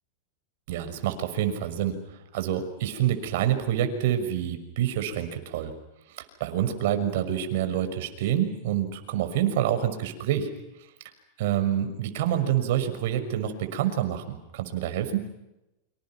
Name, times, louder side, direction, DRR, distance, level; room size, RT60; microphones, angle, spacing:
voice 1, 0.7-2.0 2.3-5.7 6.1-10.5 11.4-15.3, right 11 dB, 65° right, 8 dB, 6.0 m, -27 dB
29.5 x 26.5 x 6.0 m, 0.92 s
supercardioid pair, 130°, 0 cm